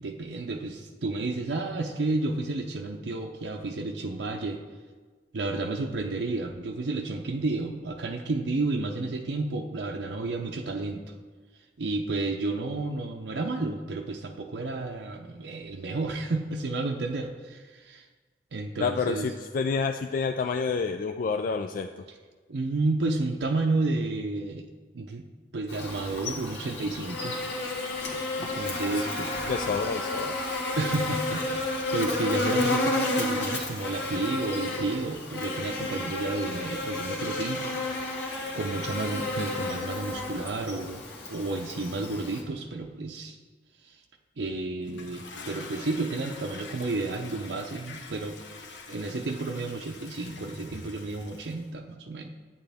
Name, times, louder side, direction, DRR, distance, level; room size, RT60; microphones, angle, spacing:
voice 1, 0.0-4.6 5.3-11.0 11.8-18.1 18.5-19.3 22.5-24.7 24.9-25.2 25.5-27.4 28.4-29.3 30.8-37.8 38.5-41.0 41.3-43.4 43.8-44.0 44.4-48.4 48.9-52.3, right 2 dB, 70° right, 2 dB, 0.6 m, -31 dB
voice 2, 18.8-21.9 29.5-30.4, left 5 dB, 50° left, 6 dB, 0.3 m, -28 dB
Buzz, 25.7-42.4, left 2 dB, 65° left, 1.6 m, -31 dB
Toilet flush, 44.8-51.7, left 3 dB, 90° left, 1.2 m, -45 dB
11.5 x 8.9 x 3.5 m, 1.4 s
head